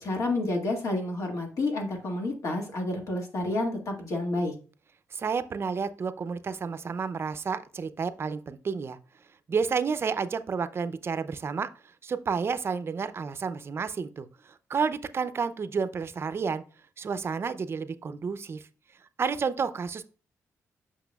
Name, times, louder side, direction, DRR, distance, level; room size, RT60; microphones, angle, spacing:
voice 1, 0.0-4.5, left 2 dB, 65° left, 1 dB, 2.0 m, -29 dB
voice 2, 5.1-9.0 9.5-11.7 12.0-16.6 17.0-18.6 19.2-20.0, right 5 dB, 45° right, 12 dB, 0.5 m, -30 dB
8.0 x 5.9 x 2.3 m, 0.38 s
cardioid pair, 90°, 6 cm